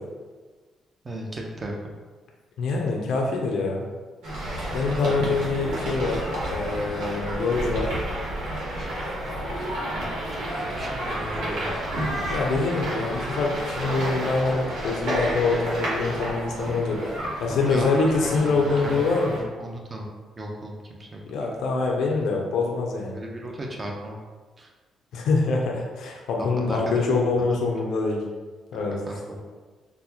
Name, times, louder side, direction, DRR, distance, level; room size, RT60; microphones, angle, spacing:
voice 1, 1.0-1.9 5.1-5.5 9.9-11.9 17.5-19.1 19.6-20.1 20.4-21.2 23.1-24.1 24.6-24.7 26.4-27.1 27.4-27.6 28.7-29.4, right 1 dB, 30° right, 0 dB, 0.6 m, -36 dB
voice 2, 2.6-3.8 4.7-8.0 12.3-19.4 21.3-23.2 25.1-28.3 28.7-29.0, left 3 dB, 75° left, 0 dB, 0.4 m, -25 dB
sound 1, 4.2-19.4, right 1 dB, 90° right, 1.0 m, -30 dB
4.0 x 2.1 x 2.8 m, 1.3 s
cardioid pair, 90°, 0 cm